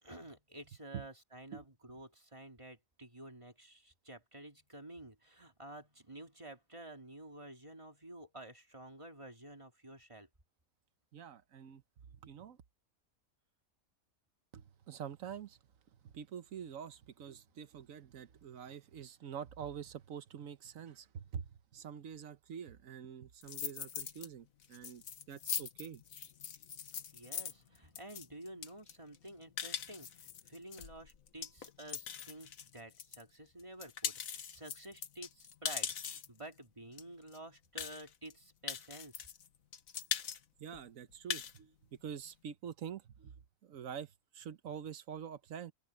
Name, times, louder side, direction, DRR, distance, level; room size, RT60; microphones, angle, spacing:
voice 1, 0.0-10.3 26.9-39.3, right 1 dB, 20° right, 2.4 m, -51 dB
voice 2, 11.1-11.8 12.2-12.6 14.5-15.6 16.0-26.0 40.6-41.7 42.0-43.3 43.6-45.7, right 8 dB, 75° right, 1.3 m, -46 dB
sound 1, 23.4-24.3 24.6-33.2 33.6-36.4 37.0-37.1 37.3-37.4 37.8-38.3 38.7-39.5 39.7-40.4 40.7-40.8 41.1-41.6, left 8 dB, 75° left, 1.5 m, -41 dB
open air
omnidirectional pair, 1.4 m